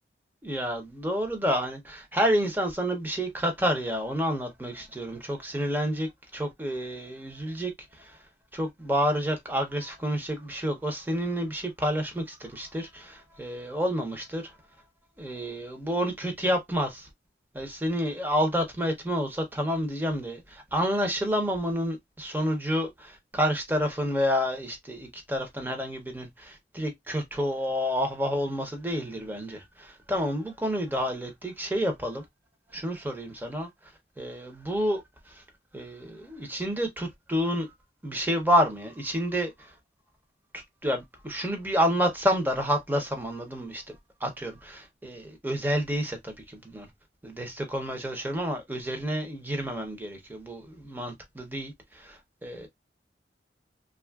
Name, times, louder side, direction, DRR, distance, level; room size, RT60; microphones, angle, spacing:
voice 1, 0.4-7.7 8.0-8.2 8.5-14.5 15.2-17.1 17.5-32.2 32.7-33.7 34.2-35.0 35.3-35.4 35.7-37.7 38.0-39.7 40.5-43.9 44.2-46.9 47.2-52.7, equal, 10° right, 0.6 m, -29 dB
3.1 x 2.4 x 2.2 m
head